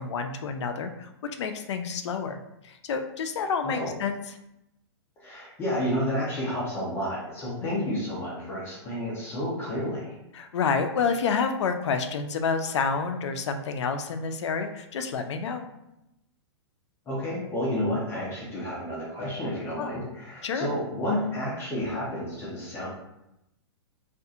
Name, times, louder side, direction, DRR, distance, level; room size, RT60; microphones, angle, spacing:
voice 1, 0.0-2.4 2.6-4.4 7.6-7.9 10.3-15.7 19.8-19.9 20.4-20.7, left 5 dB, 85° left, 7 dB, 0.4 m, -29 dB
voice 2, 5.2-10.1 17.1-22.9, left 1 dB, 15° left, -6 dB, 0.6 m, -30 dB
2.7 x 2.5 x 2.3 m, 0.87 s
hypercardioid pair, 155°, 14 cm